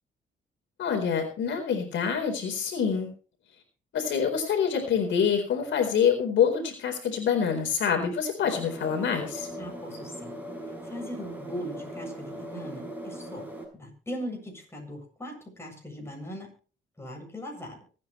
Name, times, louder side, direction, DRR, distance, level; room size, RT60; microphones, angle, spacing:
voice 1, 0.8-3.1 3.9-9.5, left 7 dB, 70° left, 3 dB, 4.2 m, -26 dB
sound 1, 8.4-13.7, equal, 10° right, 6.4 m, -39 dB
voice 2, 9.6-10.4 10.8-13.5 13.7-16.5 17.0-17.8, equal, 10° left, 1 dB, 7.7 m, -39 dB
24.5 x 9.7 x 3.2 m, 0.38 s
cardioid pair, 90°, 20 cm